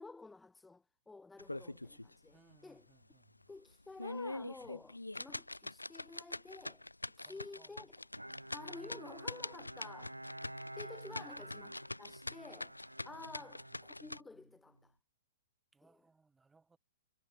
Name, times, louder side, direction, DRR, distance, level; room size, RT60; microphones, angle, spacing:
voice 1, 0.0-2.9 3.5-6.8 7.2-7.9 8.5-10.2 10.8-12.7 13.0-15.0 15.8-16.0, left 3 dB, 5° left, 1.2 m, -52 dB
sound 1, 1.4-2.1 2.5-2.6 3.1-3.2 3.8-14.2, left 2 dB, 85° left, 0.3 m, -44 dB
voice 2, 2.3-3.5 7.2-7.9 8.8-9.2 11.1-11.7 13.4-13.8 15.7-16.8, right 4 dB, 10° right, 3.3 m, -68 dB
Bowed string instrument, 8.2-14.8, right 1 dB, 90° right, 0.6 m, -50 dB
figure-of-eight pair, 110°, 0 cm